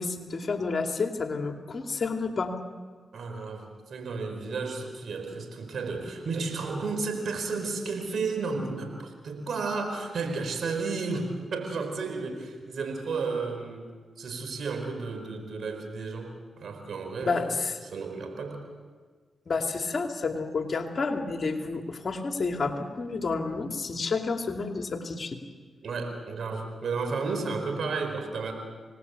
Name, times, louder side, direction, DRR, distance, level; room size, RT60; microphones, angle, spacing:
voice 1, 0.0-2.6 17.2-17.7 19.5-25.4, left 4 dB, 55° left, 4 dB, 2.6 m, -30 dB
voice 2, 3.1-13.9 14.2-17.6 17.8-18.6 25.8-28.5, right 4 dB, 70° right, 5 dB, 4.7 m, -32 dB
28.0 x 19.5 x 8.3 m, 1.5 s
supercardioid pair, 45°, 0 cm